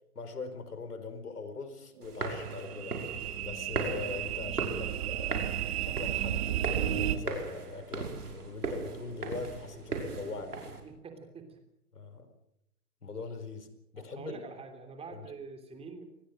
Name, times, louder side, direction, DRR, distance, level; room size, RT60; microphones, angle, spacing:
voice 1, 0.1-3.0 3.4-5.5 5.8-10.6 11.9-12.3 13.0-13.7 13.9-14.4 15.1-15.2, left 4 dB, 90° left, 9 dB, 4.7 m, -41 dB
sound 1, 2.0-10.8, right 3 dB, 90° right, 5.6 m, -38 dB
sound 2, 2.1-7.2, right 11 dB, 45° right, 2.3 m, -33 dB
voice 2, 10.8-11.6 13.9-16.0, right 4 dB, 15° right, 6 dB, 3.2 m, -45 dB
26.5 x 20.0 x 6.5 m, 0.83 s
hypercardioid pair, 140°, 45 cm